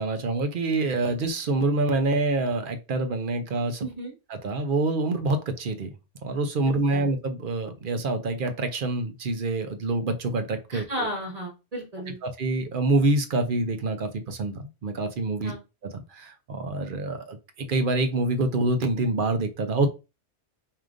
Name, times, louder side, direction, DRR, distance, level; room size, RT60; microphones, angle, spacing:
voice 1, 0.0-3.8 4.3-5.9 6.2-11.1 12.2-15.5 15.9-19.9, right 2 dB, 55° right, 8 dB, 0.8 m, -26 dB
voice 2, 3.8-4.1 6.9-7.0 10.7-12.2 15.4-15.6, equal, 35° right, 0 dB, 1.4 m, -33 dB
4.8 x 2.8 x 2.5 m, 0.28 s
omnidirectional pair, 1.1 m